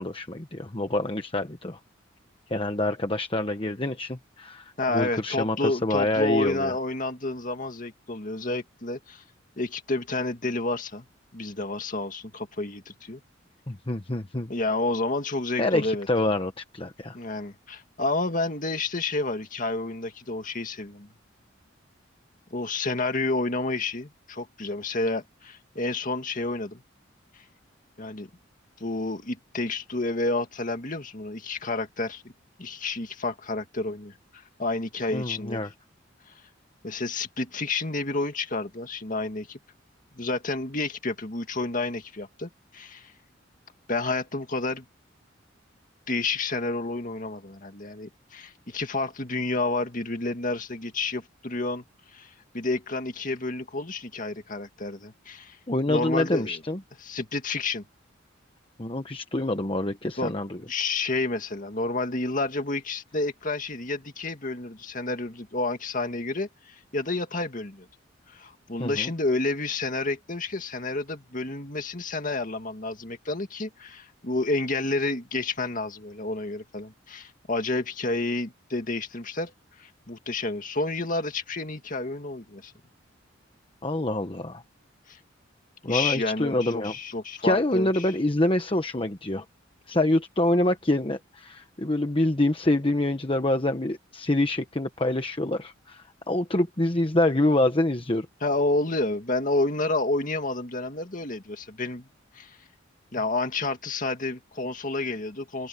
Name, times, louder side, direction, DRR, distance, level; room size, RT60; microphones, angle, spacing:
voice 1, 0.0-1.8 2.5-6.7 13.7-14.5 15.6-17.2 35.1-35.7 55.7-56.8 58.8-60.6 68.8-69.1 83.8-84.6 85.8-86.9 87.4-89.4 89.9-98.3, left 1 dB, 25° left, 1.1 m, -26 dB
voice 2, 4.8-9.2 9.6-11.0 11.3-13.2 14.5-16.1 17.1-21.1 22.5-26.8 28.0-28.3 28.8-32.3 32.6-35.6 36.3-36.4 36.8-39.6 40.1-43.1 43.9-44.9 46.1-51.8 52.1-55.6 55.9-56.6 57.0-57.8 60.2-60.3 60.7-67.9 68.3-79.5 79.8-82.7 85.1-85.2 85.8-88.0 98.4-102.1 102.3-102.6 103.1-105.7, left 2 dB, 40° left, 2.1 m, -30 dB
open air
head